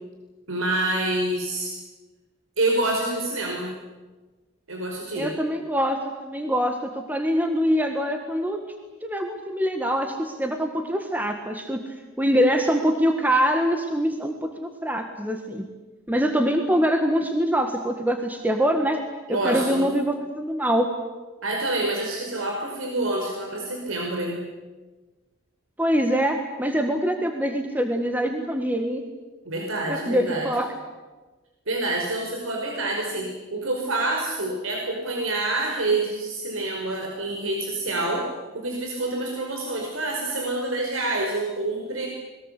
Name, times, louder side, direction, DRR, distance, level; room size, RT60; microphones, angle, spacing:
voice 1, 0.5-1.7 2.6-3.7 4.7-5.3 19.3-19.9 21.4-24.4 29.4-30.5 31.7-38.2 38.5-42.1, right 2 dB, 85° right, 1 dB, 5.1 m, -27 dB
voice 2, 5.2-6.8 7.1-8.6 9.0-15.6 16.1-19.0 19.3-20.9 25.8-29.0 29.9-30.7, equal, 10° right, 4 dB, 1.7 m, -24 dB
27.5 x 21.5 x 8.4 m, 1.2 s
head